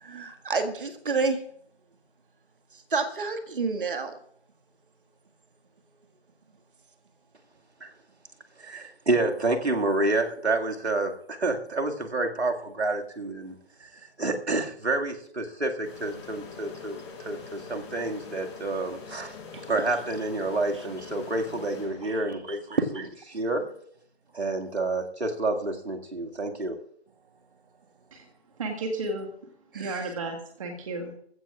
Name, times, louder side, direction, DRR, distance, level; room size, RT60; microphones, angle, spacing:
voice 1, 0.0-1.4 2.9-4.1 19.5-19.6 22.0-22.1 22.7-22.8 29.7-30.1, right 4 dB, 55° right, 6 dB, 1.8 m, -28 dB
voice 2, 8.6-13.6 13.8-13.9 14.2-19.4 19.7-23.6 24.3-26.8, right 2 dB, 80° right, 2 dB, 2.2 m, -29 dB
sound 1, 15.8-22.5, left 5 dB, 25° left, 4.5 m, -44 dB
voice 3, 28.6-29.3 29.7-31.1, right 2 dB, 30° right, 2 dB, 1.8 m, -33 dB
19.5 x 15.5 x 2.5 m, 0.67 s
figure-of-eight pair, 155°, 32 cm